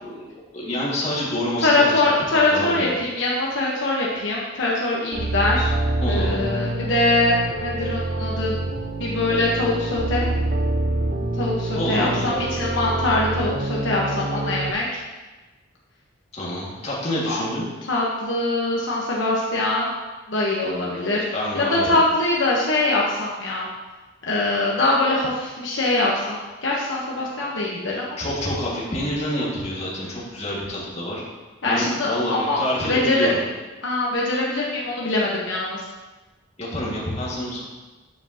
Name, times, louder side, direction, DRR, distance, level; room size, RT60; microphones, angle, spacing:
voice 1, 0.5-1.9 2.5-2.9 6.0-6.5 11.7-12.4 16.3-17.7 21.3-22.0 28.2-31.2 31.7-33.4 36.6-37.6, left 1 dB, 35° left, -6 dB, 2.0 m, -27 dB
voice 2, 1.6-5.7 6.1-7.4 7.6-8.6 9.0-10.2 11.4-15.0 17.3-17.4 17.9-19.9 20.3-21.2 21.5-23.7 24.3-28.1 31.6-33.3 33.8-35.8, left 2 dB, 70° left, -4 dB, 1.2 m, -23 dB
sound 1, 5.1-14.7, right 2 dB, 45° right, 0.5 m, -26 dB
8.8 x 7.0 x 2.9 m, 1.2 s
head